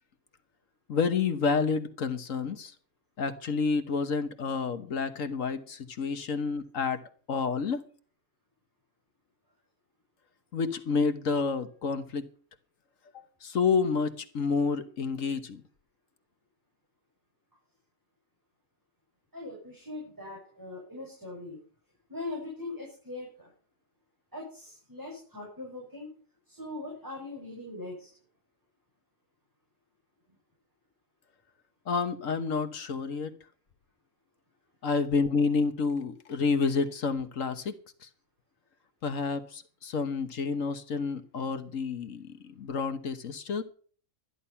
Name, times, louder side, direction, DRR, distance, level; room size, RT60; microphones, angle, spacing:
voice 1, 0.9-2.7 3.2-7.0 7.3-7.8 10.5-12.2 13.1-15.6 31.9-33.3 34.8-37.7 38.0-38.1 39.0-43.6, left 5 dB, 70° left, 9 dB, 1.5 m, -29 dB
voice 2, 19.3-21.6 22.1-23.5 24.3-26.1 26.5-28.1, left 2 dB, 15° right, -4 dB, 6.4 m, -41 dB
13.0 x 11.0 x 5.6 m, 0.43 s
omnidirectional pair, 1.4 m